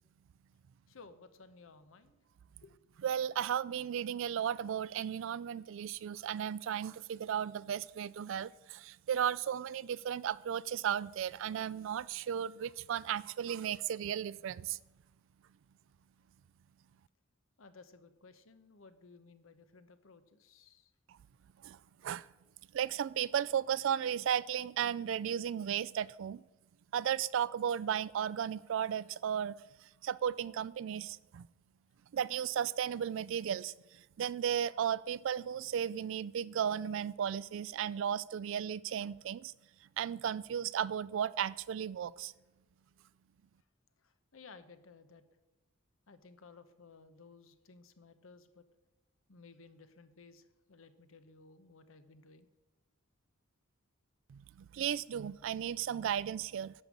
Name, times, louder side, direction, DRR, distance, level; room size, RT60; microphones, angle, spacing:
voice 1, 0.9-2.2 2.6-2.7 17.6-20.9 44.0-45.2 46.1-48.7 49.3-52.5, left 4 dB, 70° left, 0.9 m, -57 dB
voice 2, 3.0-14.8 21.6-22.3 22.7-26.4 26.9-29.6 30.0-31.5 32.1-33.7 34.2-39.5 40.0-42.3 54.3-56.7, right 9 dB, 65° right, 0.3 m, -35 dB
11.0 x 5.4 x 7.2 m
head